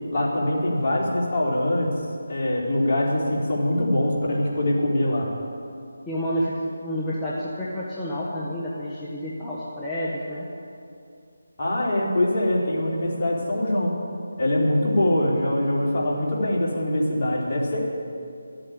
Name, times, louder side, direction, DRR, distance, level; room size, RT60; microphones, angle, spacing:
voice 1, 0.1-1.9 2.3-5.3 11.6-14.0 14.4-17.8, left 1 dB, 40° left, -4 dB, 3.8 m, -23 dB
voice 2, 6.1-10.4, equal, 10° left, -8 dB, 1.5 m, -29 dB
13.0 x 8.9 x 10.0 m, 2.5 s
figure-of-eight pair, 160°, 0 cm